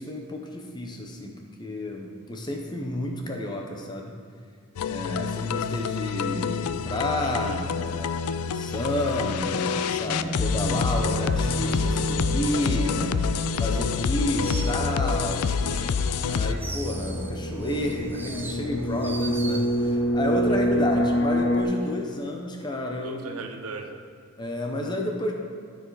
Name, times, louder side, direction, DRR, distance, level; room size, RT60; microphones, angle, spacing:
voice 1, 0.0-1.3 1.6-4.1 4.8-13.2 13.6-15.6 16.2-23.4 24.4-25.3, left 1 dB, 20° left, 2 dB, 0.8 m, -30 dB
sound 1, 4.8-16.5, left 6 dB, 85° left, 0.4 m, -27 dB
voice 2, 7.2-7.6 15.5-16.0 20.5-21.0 23.0-24.0, right 4 dB, 85° right, 6 dB, 0.8 m, -40 dB
sound 2, 10.0-21.6, equal, 60° left, 1.0 m, -28 dB
sound 3, 11.3-13.9 14.1-15.4 15.8-20.1 20.3-20.8, right 3 dB, 10° right, 0.4 m, -42 dB
13.0 x 5.1 x 4.0 m, 2.2 s
head